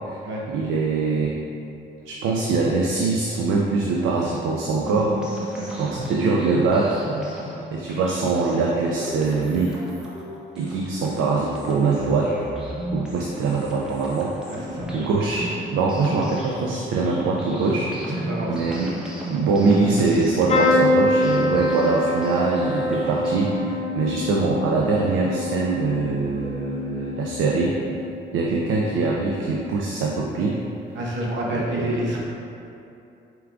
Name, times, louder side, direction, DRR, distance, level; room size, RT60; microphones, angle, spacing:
voice 1, 0.5-1.3 2.1-5.5 5.8-7.0 7.7-9.7 10.6-12.4 12.9-14.3 14.9-18.2 18.5-18.9 19.3-27.7 28.3-30.6 31.5-31.9, right 3 dB, 85° right, -2 dB, 0.4 m, -23 dB
sound 1, 4.8-23.7, equal, 5° right, 0.8 m, -36 dB
voice 2, 5.5-6.0 14.5-14.9 18.1-18.7 30.9-32.2, right 1 dB, 70° right, -3 dB, 0.9 m, -29 dB
sound 2, 20.5-28.3 28.8-29.3 30.6-30.8 31.0-31.1, left 1 dB, 30° left, 0.7 m, -25 dB
4.6 x 3.4 x 2.5 m, 2.7 s
cardioid pair, 90°, 20 cm